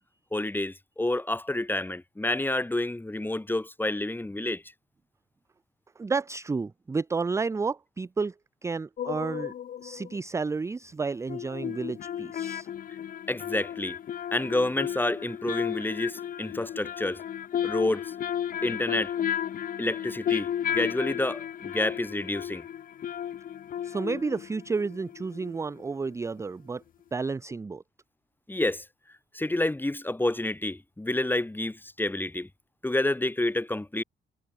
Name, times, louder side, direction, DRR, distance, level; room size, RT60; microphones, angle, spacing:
voice 1, 0.3-4.6 13.3-14.0 14.3-17.2 17.6-18.1 18.6-19.1 19.8-22.6 28.5-28.8 29.3-32.5 32.8-34.0, left 1 dB, 10° left, 1.6 m, -29 dB
voice 2, 6.0-8.3 8.6-9.5 9.8-12.7 23.8-26.8 27.1-27.8, right 4 dB, 15° right, 0.3 m, -31 dB
sound 1, 9.0-10.2 11.3-25.8 26.1-26.2, left 10 dB, 45° left, 0.5 m, -34 dB
cardioid pair, 90°, 20 cm